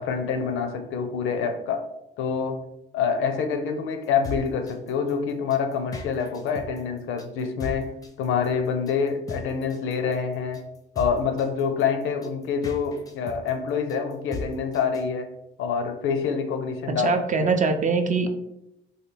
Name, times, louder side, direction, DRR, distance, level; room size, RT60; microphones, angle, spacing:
voice 1, 0.0-1.9 2.2-2.7 2.9-10.6 11.0-15.3 15.6-17.5, left 6 dB, 85° left, 6 dB, 0.5 m, -26 dB
sound 1, 4.0-15.0, left 2 dB, 20° left, 0.5 m, -38 dB
voice 2, 17.0-18.3, right 4 dB, 40° right, 7 dB, 0.4 m, -22 dB
3.1 x 2.3 x 3.2 m, 0.85 s
cardioid pair, 90°, 20 cm